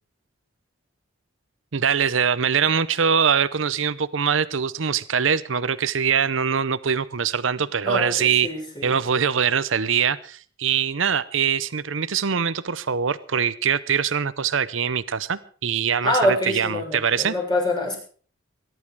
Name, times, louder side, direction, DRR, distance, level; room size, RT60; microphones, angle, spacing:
voice 1, 1.7-8.5 8.8-17.3, right 7 dB, 75° right, 15 dB, 0.8 m, -23 dB
voice 2, 7.8-9.0 16.0-18.0, left 1 dB, 25° left, 0 dB, 6.7 m, -25 dB
22.5 x 11.0 x 4.8 m, 0.44 s
head